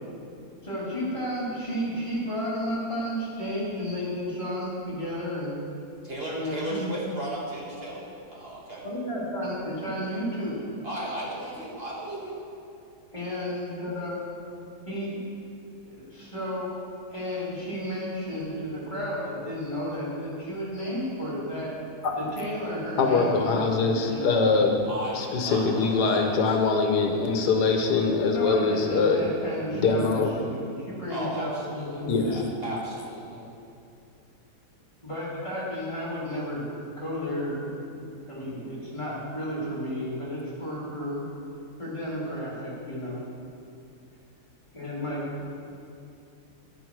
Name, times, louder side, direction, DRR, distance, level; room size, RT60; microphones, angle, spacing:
voice 1, 0.6-5.5 6.3-6.9 8.8-10.6 13.1-14.3 14.9-15.2 15.8-16.7 17.1-21.7 22.2-24.8 28.3-32.1 33.3-33.4 35.0-36.7 37.0-41.2 41.8-43.2 44.7-45.5, equal, 20° left, -8 dB, 3.0 m, -32 dB
voice 2, 6.0-8.8 10.8-12.4 24.9-26.5 31.1-33.4, right 1 dB, 40° right, -5 dB, 1.9 m, -35 dB
voice 3, 23.0-24.8 25.1-29.2 29.7-30.4 32.1-32.4, left 4 dB, 85° left, 3 dB, 1.5 m, -23 dB
10.5 x 10.0 x 4.7 m, 2.6 s
omnidirectional pair, 1.7 m